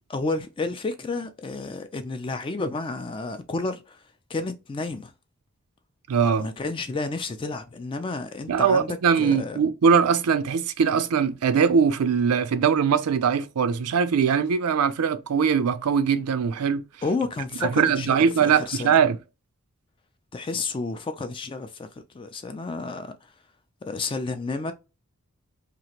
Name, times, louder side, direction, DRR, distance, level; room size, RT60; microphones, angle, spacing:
voice 1, 0.1-4.0 4.3-5.1 6.4-9.6 17.0-19.0 20.3-23.3 23.9-24.7, left 3 dB, 25° left, 0.3 m, -31 dB
voice 2, 6.1-6.5 8.5-16.8 17.6-19.2, right 6 dB, 85° right, 0.4 m, -21 dB
2.9 x 2.5 x 2.8 m
head